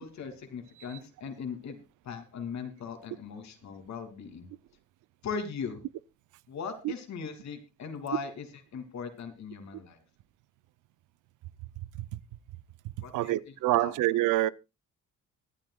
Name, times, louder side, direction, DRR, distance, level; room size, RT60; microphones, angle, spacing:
voice 1, 0.0-4.5 5.2-5.8 6.5-8.5 8.7-10.0 13.0-13.3 13.8-14.0, left 6 dB, 65° left, 2.8 m, -39 dB
voice 2, 13.1-14.5, right 16 dB, 85° right, 0.6 m, -26 dB
24.0 x 9.3 x 2.3 m
cardioid pair, 90°, 30 cm